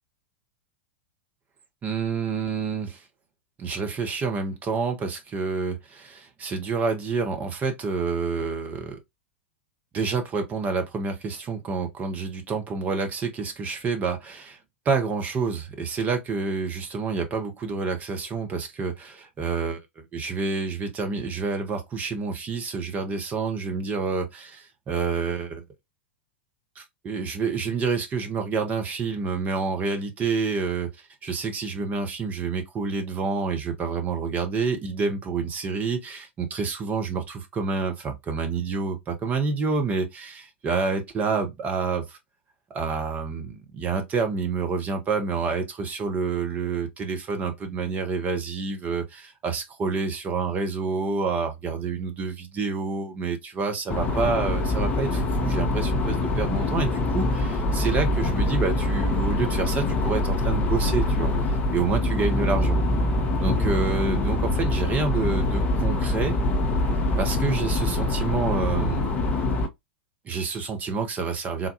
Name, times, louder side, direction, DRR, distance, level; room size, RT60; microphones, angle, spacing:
voice 1, 1.8-3.0 3.6-9.0 9.9-14.6 14.8-25.6 26.8-30.9 31.2-42.2 42.7-62.8 63.4-66.4 67.2-69.1 70.2-71.7, right 4 dB, 25° right, 0.8 m, -28 dB
sound 1, 53.9-69.7, left 2 dB, 25° left, 0.7 m, -24 dB
3.8 x 2.3 x 2.8 m
figure-of-eight pair, 95°, 7 cm